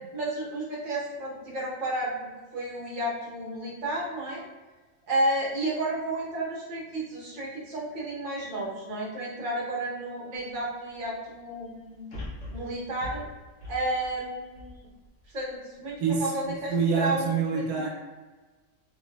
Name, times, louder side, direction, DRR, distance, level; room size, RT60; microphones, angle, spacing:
voice 1, 0.1-4.4 5.1-12.1 12.5-13.3 13.7-14.9 15.3-17.4 17.8-17.9, right 1 dB, 40° right, -6 dB, 0.7 m, -32 dB
sound 1, 10.4-10.5 12.1-15.4 15.9-16.0, left 2 dB, 50° left, 1.0 m, -41 dB
voice 2, 16.0-17.9, right 5 dB, 85° right, -1 dB, 1.2 m, -27 dB
3.2 x 2.8 x 2.2 m, 1.3 s
omnidirectional pair, 1.6 m